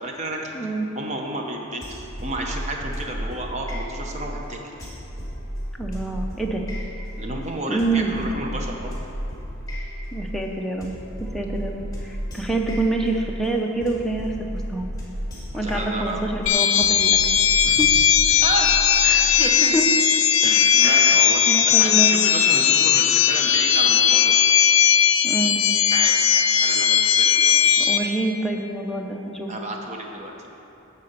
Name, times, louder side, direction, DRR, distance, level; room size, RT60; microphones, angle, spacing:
voice 1, 0.0-0.5 0.9-4.6 7.2-8.9 15.6-16.2 17.6-17.9 18.4-18.7 19.4-19.8 20.4-24.3 25.9-28.0 29.5-30.5, right 1 dB, 30° right, 1 dB, 0.8 m, -31 dB
voice 2, 0.5-0.9 5.8-6.7 7.7-8.3 10.1-14.9 15.5-17.2 17.7-17.9 19.0-19.4 19.7-19.9 20.8-21.2 21.5-22.2 25.2-25.6 27.8-29.5, right 2 dB, ahead, 0 dB, 0.5 m, -27 dB
sound 1, 1.8-19.6, equal, 15° left, 2.1 m, -33 dB
sound 2, 16.5-28.0, left 8 dB, 70° left, 0.5 m, -18 dB
9.5 x 4.3 x 6.7 m, 2.9 s
head